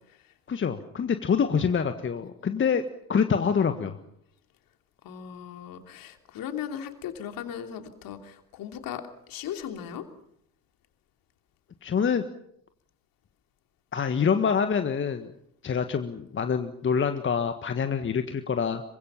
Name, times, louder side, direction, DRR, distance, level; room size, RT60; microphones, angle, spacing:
voice 1, 0.5-2.8 3.1-4.0 11.8-12.2 13.9-15.3 15.6-18.8, left 6 dB, 25° left, 8 dB, 1.6 m, -26 dB
voice 2, 5.0-10.0, left 9 dB, 45° left, 6 dB, 3.1 m, -37 dB
27.0 x 24.0 x 5.7 m, 0.73 s
figure-of-eight pair, 60°, 46 cm